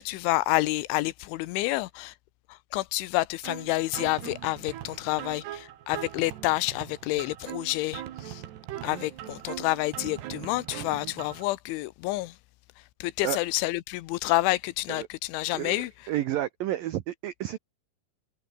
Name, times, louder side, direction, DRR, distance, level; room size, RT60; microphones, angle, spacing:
voice 1, 0.0-2.1 2.5-8.4 8.8-12.4 13.0-15.9, left 18 dB, 80° left, 3.2 m, -29 dB
sound 1, 3.4-11.4, right 12 dB, 65° right, 3.5 m, -41 dB
voice 2, 15.5-17.6, right 13 dB, 85° right, 2.0 m, -31 dB
omnidirectional pair, 5.5 m